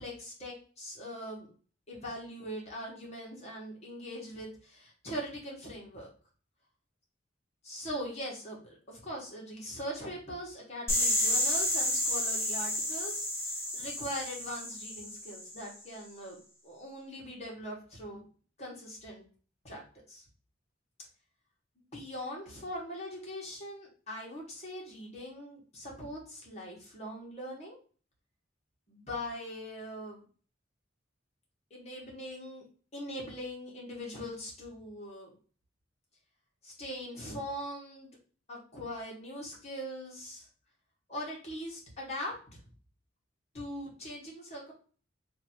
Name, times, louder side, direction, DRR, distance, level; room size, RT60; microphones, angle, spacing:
voice 1, 0.0-1.5 1.9-6.1 7.6-18.2 18.6-19.2 19.6-19.8 20.1-20.2 21.9-27.7 28.9-30.2 31.7-32.6 32.9-35.3 36.6-38.1 38.5-40.5 41.1-42.3 43.5-44.7, equal, 35° left, -3 dB, 1.7 m, -41 dB
sound 1, 10.9-15.7, left 1 dB, 15° left, 0.9 m, -31 dB
3.3 x 2.7 x 4.4 m, 0.40 s
head